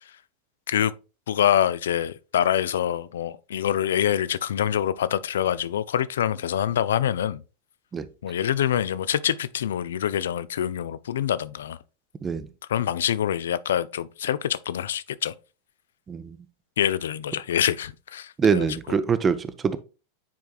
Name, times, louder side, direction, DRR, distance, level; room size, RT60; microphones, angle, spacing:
voice 1, 1.3-7.4 8.2-11.8 12.7-15.3 16.8-18.8, left 10 dB, 60° left, 0.4 m, -25 dB
voice 2, 18.4-19.8, right 6 dB, 20° right, 0.6 m, -24 dB
9.3 x 4.6 x 2.4 m
figure-of-eight pair, 90°, 0 cm